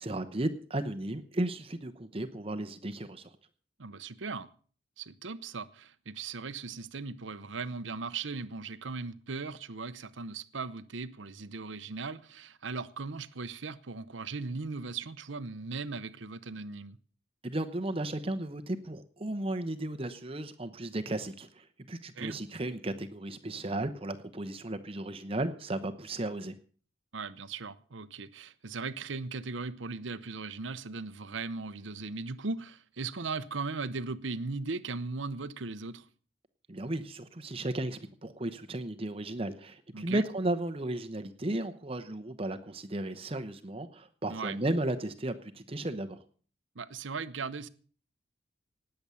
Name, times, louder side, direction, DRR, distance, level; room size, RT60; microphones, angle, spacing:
voice 1, 0.0-3.3 17.4-26.5 36.7-46.2, right 1 dB, 30° right, 0.9 m, -34 dB
voice 2, 3.8-4.5 5.0-17.0 22.1-22.4 27.1-36.1 39.9-40.2 44.3-44.6 46.7-47.7, right 4 dB, 75° right, 0.9 m, -38 dB
19.0 x 7.9 x 7.0 m
head